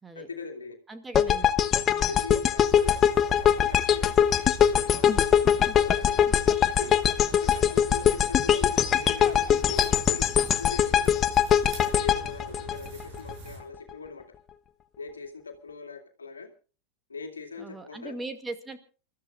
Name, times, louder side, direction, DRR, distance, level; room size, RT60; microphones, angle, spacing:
voice 1, 0.1-0.8 2.0-6.2 6.6-6.9 7.4-11.2 11.8-14.2 15.0-16.5 17.1-18.2, left 4 dB, 85° left, 3 dB, 2.2 m, -41 dB
voice 2, 0.9-1.5 1.8-2.2 17.6-18.8, right 3 dB, 15° right, 7 dB, 2.2 m, -39 dB
sound 1, 1.1-13.3, left 9 dB, 30° left, 0.9 m, -22 dB
sound 2, 2.7-13.6, right 4 dB, 45° right, 6.9 m, -45 dB
28.5 x 13.5 x 2.5 m, 0.36 s
figure-of-eight pair, 90°, 0 cm